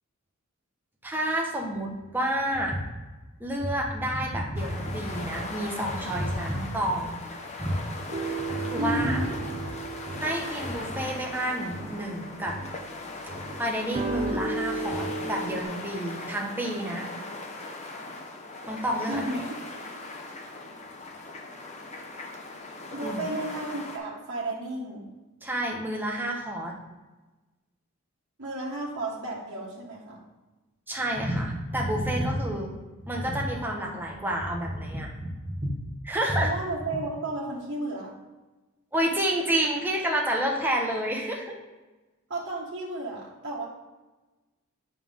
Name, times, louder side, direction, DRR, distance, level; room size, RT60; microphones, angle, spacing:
voice 1, 1.0-2.8 3.4-7.1 7.6-7.8 8.2-9.2 10.2-12.6 13.6-17.1 18.7-19.2 23.0-23.2 25.4-26.7 30.9-32.7 33.0-35.7 36.0-36.5 38.9-41.6, right 1 dB, 10° right, -1 dB, 1.3 m, -29 dB
sound 1, 4.5-24.0, left 2 dB, 30° left, 1.0 m, -39 dB
sound 2, 8.1-13.0 13.3-15.6, right 3 dB, 25° right, 0.6 m, -34 dB
voice 2, 8.8-9.3 19.1-19.6 22.9-25.1 28.4-30.2 36.3-38.1 42.3-43.7, right 2 dB, 55° right, -5 dB, 1.5 m, -33 dB
7.3 x 5.6 x 3.7 m, 1.1 s
head